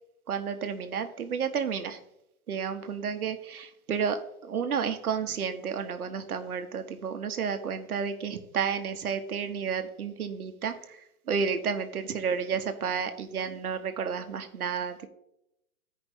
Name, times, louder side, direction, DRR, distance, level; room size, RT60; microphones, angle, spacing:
voice 1, 0.3-2.0 2.5-15.1, right 6 dB, 90° right, 8 dB, 1.1 m, -31 dB
13.5 x 5.2 x 3.0 m, 0.81 s
hypercardioid pair, 160°, 42 cm